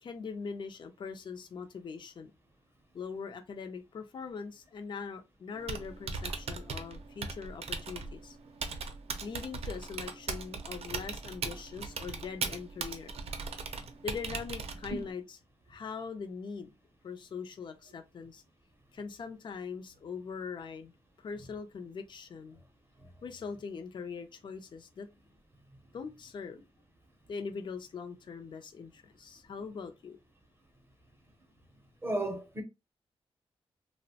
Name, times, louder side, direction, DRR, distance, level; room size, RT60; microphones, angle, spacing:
voice 1, 0.0-2.3 2.9-8.4 9.2-13.1 14.0-15.4 15.7-16.7 17.0-18.4 18.9-20.9 21.2-22.6 23.2-25.1 25.9-26.6 27.3-30.2, left 5 dB, 45° left, 0.4 m, -41 dB
Typing, 5.5-15.1, right 4 dB, 70° right, 0.5 m, -39 dB
voice 2, 32.0-32.6, right 1 dB, 20° right, 0.6 m, -33 dB
2.8 x 2.0 x 2.7 m
wide cardioid pair, 140°, 11 cm